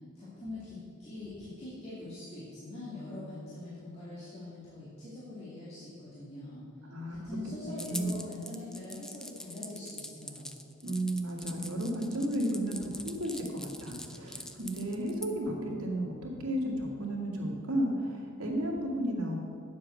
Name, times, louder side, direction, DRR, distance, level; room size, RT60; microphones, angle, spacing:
voice 1, 0.1-6.6 7.1-10.5, left 2 dB, 30° left, -10 dB, 2.3 m, -43 dB
voice 2, 6.8-7.2 7.6-8.2 10.8-19.4, right 1 dB, 85° right, -2 dB, 2.1 m, -33 dB
sound 1, 7.8-15.3, left 1 dB, 5° left, 0.4 m, -43 dB
9.1 x 7.6 x 6.5 m, 2.4 s
head